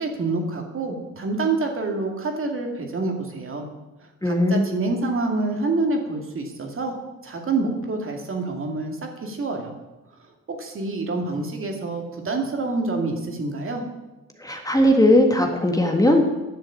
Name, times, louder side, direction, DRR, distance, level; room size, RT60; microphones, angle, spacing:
voice 1, 0.0-3.7 4.2-9.7 10.5-13.8, right 3 dB, 45° right, 2 dB, 2.3 m, -27 dB
voice 2, 4.2-4.7 14.4-16.2, left 1 dB, 10° left, 3 dB, 1.7 m, -18 dB
11.0 x 6.3 x 8.6 m, 1.1 s
cardioid pair, 90°, 30 cm